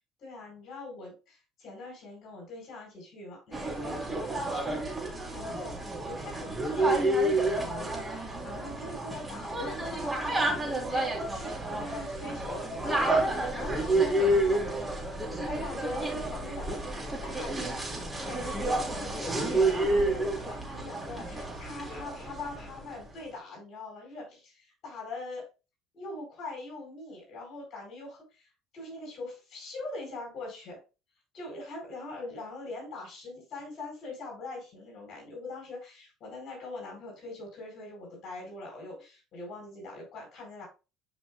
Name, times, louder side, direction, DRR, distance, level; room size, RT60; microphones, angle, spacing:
voice 1, 0.2-16.8 17.2-17.8 18.2-25.5 25.9-30.8 31.3-40.7, left 2 dB, 55° left, 0 dB, 4.4 m, -42 dB
sound 1, 3.5-22.8, right 2 dB, 20° right, 3.3 m, -30 dB
12.0 x 5.1 x 2.3 m, 0.29 s
supercardioid pair, 80°, 0 cm